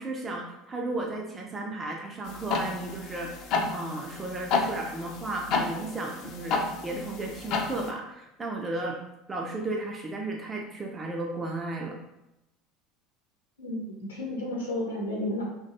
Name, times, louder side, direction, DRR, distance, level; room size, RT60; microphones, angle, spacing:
voice 1, 0.0-6.6 6.8-9.0 9.3-12.0, right 2 dB, 25° right, 0 dB, 0.4 m, -34 dB
sound 1, 2.3-7.9, left 4 dB, 55° left, 0.3 m, -31 dB
voice 2, 13.6-15.4, left 1 dB, 85° left, -2 dB, 0.7 m, -32 dB
2.5 x 2.2 x 2.7 m, 0.90 s
figure-of-eight pair, 70°, 0 cm